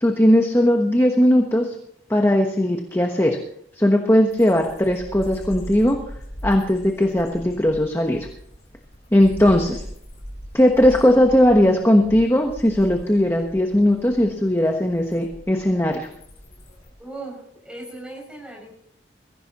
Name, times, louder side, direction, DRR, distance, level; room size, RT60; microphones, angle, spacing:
voice 1, 0.0-1.7 2.1-3.4 3.8-6.0 6.4-8.3 9.1-9.8 10.5-16.1, left 1 dB, 15° left, 3 dB, 1.1 m, -18 dB
sound 1, 4.3-16.9, equal, 35° left, 5.0 m, -39 dB
voice 2, 17.0-18.7, right 2 dB, 5° right, -2 dB, 6.5 m, -37 dB
22.0 x 15.0 x 3.0 m, 0.70 s
head